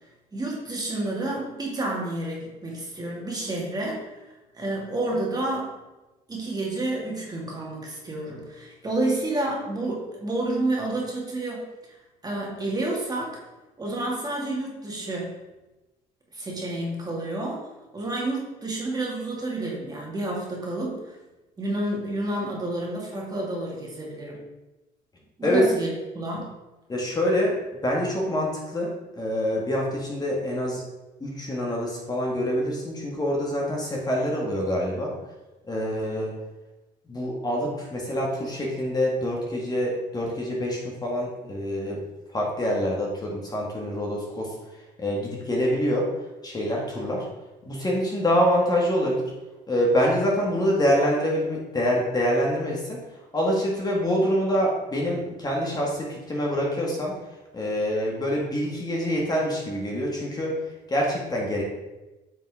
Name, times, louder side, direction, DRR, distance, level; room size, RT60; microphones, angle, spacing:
voice 1, 0.3-4.2 4.5-5.7 6.3-12.0 12.2-13.4 13.8-15.4 16.3-21.2 21.6-24.4 25.4-26.5, right 2 dB, 25° right, -3 dB, 2.4 m, -30 dB
voice 2, 26.9-27.5 27.8-30.8 31.2-35.1 35.7-36.4 37.1-42.0 42.3-44.5 45.0-46.1 46.4-47.2 47.6-49.2 49.7-53.0 53.3-57.1 57.5-60.6 60.9-61.6, equal, 25° left, -2 dB, 2.0 m, -25 dB
8.7 x 5.7 x 3.7 m, 1.1 s
cardioid pair, 110°, 17 cm